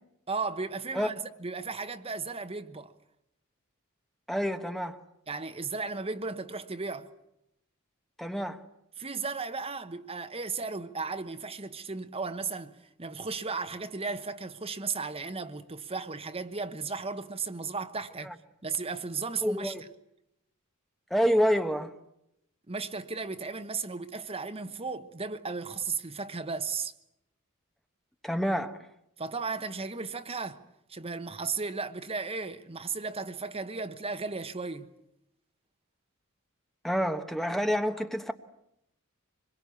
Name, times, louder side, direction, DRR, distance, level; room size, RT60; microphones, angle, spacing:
voice 1, 0.3-2.9 5.3-7.1 9.0-12.7 13.0-18.3 18.6-19.7 22.7-26.9 29.2-30.6 30.9-34.9, right 4 dB, 30° right, 1.1 m, -35 dB
voice 2, 4.3-5.0 8.2-8.6 18.2-18.3 19.4-19.8 21.1-21.9 28.2-28.9 36.8-38.3, equal, ahead, 1.1 m, -28 dB
25.5 x 22.0 x 8.4 m
head